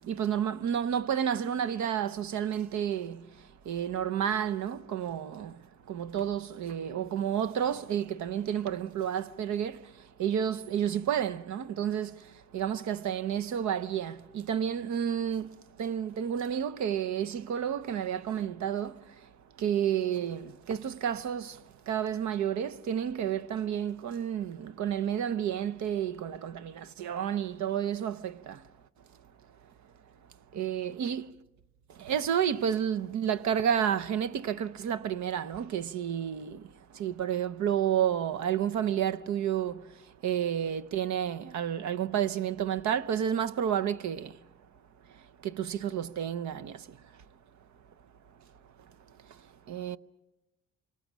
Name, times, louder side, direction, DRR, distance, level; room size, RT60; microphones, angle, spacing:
voice 1, 0.1-3.2 3.7-5.5 5.9-9.8 10.2-12.1 12.5-15.5 15.8-18.9 19.6-21.5 21.9-28.6 30.5-31.3 32.0-36.6 37.0-39.7 40.2-44.3 45.5-46.8 49.7-50.0, right 9 dB, 70° right, 0.8 m, -30 dB
27.5 x 25.0 x 6.2 m
cardioid pair, 90°, 30 cm